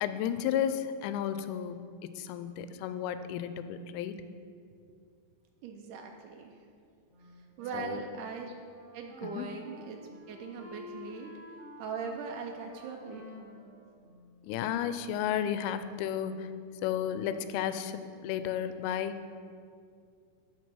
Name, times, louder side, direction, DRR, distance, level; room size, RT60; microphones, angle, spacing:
voice 1, 0.0-4.2 7.7-8.0 9.2-9.5 14.4-16.5 16.8-19.2, left 9 dB, 85° left, 11 dB, 2.5 m, -33 dB
voice 2, 5.6-6.6 7.6-8.5 8.9-11.3 11.8-13.5, right 5 dB, 85° right, 2 dB, 1.7 m, -40 dB
Wind instrument woodwind instrument, 7.1-14.6, left 1 dB, 65° right, 3.8 m, -51 dB
12.5 x 4.3 x 6.1 m, 2.3 s
omnidirectional pair, 4.4 m